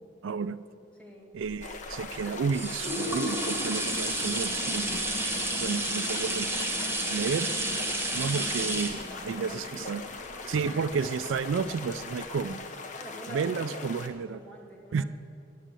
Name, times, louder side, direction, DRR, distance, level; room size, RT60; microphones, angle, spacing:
voice 1, 0.2-0.6 1.3-5.1 5.6-6.5 7.1-7.5 8.1-10.0 10.5-12.6 13.3-14.4 14.9-15.0, right 5 dB, 85° right, 14 dB, 0.4 m, -31 dB
voice 2, 0.9-1.3 8.4-8.5 9.1-11.0 13.0-13.9 14.3-15.1, right 2 dB, 5° left, -3 dB, 1.8 m, -46 dB
sound 1, 1.5-11.2 11.8-11.9, right 1 dB, 15° right, 1.2 m, -31 dB
sound 2, 1.6-14.1, left 4 dB, 40° left, 0.8 m, -41 dB
9.1 x 8.3 x 7.4 m, 2.4 s
head